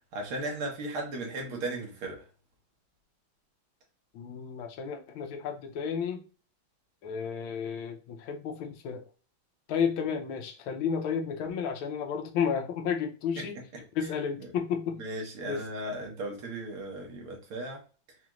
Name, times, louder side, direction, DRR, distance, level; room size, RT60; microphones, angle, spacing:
voice 1, 0.1-2.2 13.4-13.5 15.0-17.8, right 2 dB, 85° right, 1 dB, 2.1 m, -36 dB
voice 2, 4.1-6.2 7.0-9.1 9.7-15.0 15.5-15.7, left 7 dB, 75° left, 5 dB, 1.5 m, -32 dB
4.9 x 2.4 x 3.0 m, 0.36 s
omnidirectional pair, 2.3 m